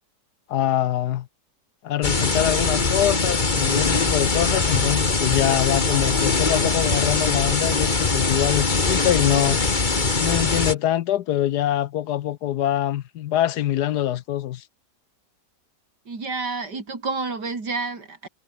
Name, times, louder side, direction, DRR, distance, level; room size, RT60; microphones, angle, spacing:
voice 1, 0.5-1.3 1.8-9.6 10.2-14.6, left 12 dB, 75° left, 1.2 m, -24 dB
sound 1, 2.0-10.7, left 3 dB, 25° left, 1.8 m, -22 dB
voice 2, 16.1-18.3, right 4 dB, 70° right, 4.3 m, -29 dB
omnidirectional pair, 1.9 m